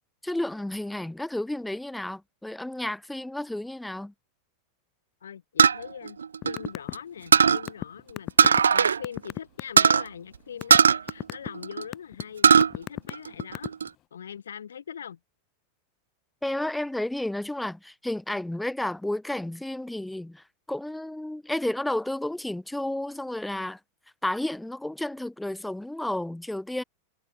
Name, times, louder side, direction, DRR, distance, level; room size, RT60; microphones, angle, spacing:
voice 1, 0.2-4.1 16.4-23.8 24.2-26.8, left 1 dB, 5° left, 5.4 m, -32 dB
voice 2, 5.2-6.2 6.4-12.5 12.7-13.7 14.1-15.2, left 8 dB, 65° left, 7.0 m, -41 dB
sound 1, 5.6-6.9 7.3-7.7 8.4-9.0 9.3-9.4 9.8-10.0 10.7-11.8 12.2-12.7 13.1-13.9, right 6 dB, 70° right, 1.9 m, -18 dB
sound 2, 6.4-6.9 7.2-9.8 10.3-10.8 11.1-11.5 11.9-12.2 12.6-13.9, left 15 dB, 35° left, 6.2 m, -33 dB
figure-of-eight pair, 90°, 0 cm